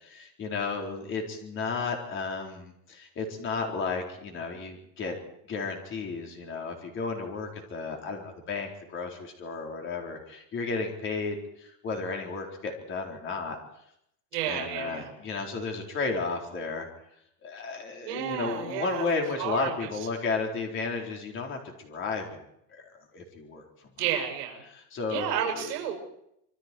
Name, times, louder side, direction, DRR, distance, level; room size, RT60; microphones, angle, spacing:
voice 1, 0.0-5.2 5.5-13.6 14.5-16.9 17.4-22.4 22.7-23.9 24.7-25.7, left 4 dB, 25° left, 2 dB, 4.4 m, -33 dB
voice 2, 14.3-15.1 18.0-19.1 19.4-19.9 24.0-24.6 25.1-26.0, right 10 dB, 70° right, 2 dB, 7.1 m, -31 dB
26.5 x 24.0 x 4.7 m, 0.75 s
supercardioid pair, 165°, 48 cm